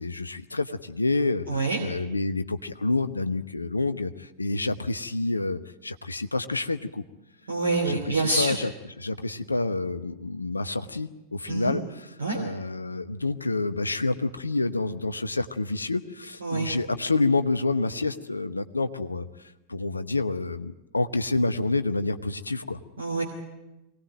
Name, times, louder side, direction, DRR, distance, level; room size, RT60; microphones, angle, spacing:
voice 1, 0.0-7.0 7.8-8.7 9.0-19.2 19.7-22.8, left 2 dB, 80° left, 11 dB, 1.0 m, -28 dB
voice 2, 1.5-1.8 7.5-8.6 11.5-11.8 12.2-12.4 16.4-16.7 23.0-23.2, right 3 dB, 70° right, 1 dB, 2.9 m, -26 dB
23.5 x 19.0 x 9.2 m, 0.98 s
figure-of-eight pair, 90°, 0 cm